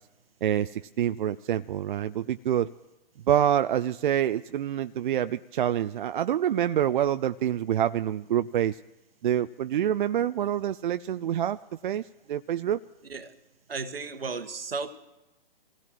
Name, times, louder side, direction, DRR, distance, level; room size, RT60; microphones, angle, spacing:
voice 1, 0.4-2.7 3.3-8.8 9.2-11.6 11.8-12.0 12.3-12.8, right 10 dB, 60° right, 11 dB, 0.4 m, -26 dB
voice 2, 13.0-13.3 13.7-14.9, right 4 dB, 80° right, 9 dB, 1.3 m, -34 dB
25.5 x 17.0 x 3.0 m, 1.0 s
figure-of-eight pair, 120°, 29 cm